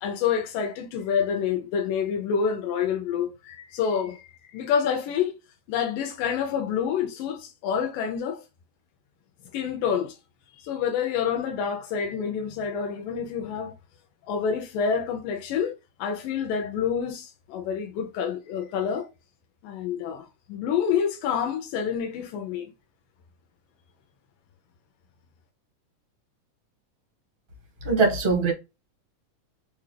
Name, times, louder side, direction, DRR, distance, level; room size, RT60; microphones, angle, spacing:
voice 1, 0.0-5.4 5.7-8.4 9.5-10.2 10.5-13.7 14.2-19.1 19.6-22.7, left 7 dB, 85° left, 2.3 m, -28 dB
voice 2, 27.8-28.5, right 4 dB, 65° right, 0.5 m, -21 dB
6.4 x 2.4 x 3.3 m
omnidirectional pair, 3.8 m